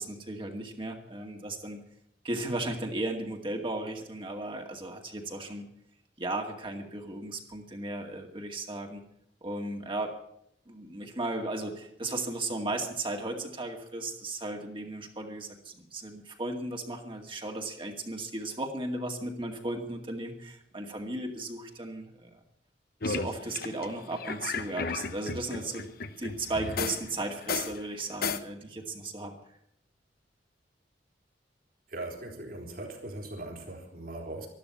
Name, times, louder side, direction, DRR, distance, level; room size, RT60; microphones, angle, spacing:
voice 1, 0.0-1.8 2.2-5.7 6.2-9.0 9.4-10.1 10.7-22.4 23.0-25.9 26.2-29.4, right 2 dB, 30° right, 2 dB, 2.2 m, -35 dB
sound 1, 23.0-27.1 27.4-28.4, left 4 dB, 60° left, 1.0 m, -34 dB
voice 2, 31.9-34.5, right 2 dB, 55° right, 1 dB, 3.8 m, -40 dB
13.0 x 12.5 x 8.5 m, 0.73 s
head